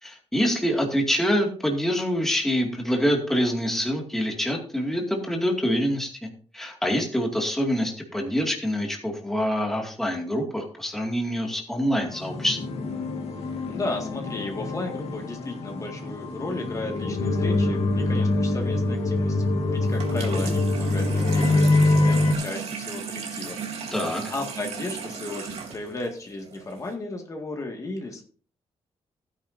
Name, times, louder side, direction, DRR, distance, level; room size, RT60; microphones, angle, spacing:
voice 1, 0.0-6.3 6.5-12.6 23.9-24.3, equal, 5° left, 1 dB, 2.3 m, -25 dB
sound 1, 12.1-22.3, left 2 dB, 70° left, 2.5 m, -24 dB
voice 2, 13.7-24.0 24.3-28.2, left 2 dB, 30° left, 2 dB, 2.0 m, -34 dB
Water tap faucet / Sink (filling or washing), 19.9-26.9, right 6 dB, 80° right, 3.4 m, -36 dB
16.0 x 10.0 x 2.7 m, 0.42 s
wide cardioid pair, 145°, 11 cm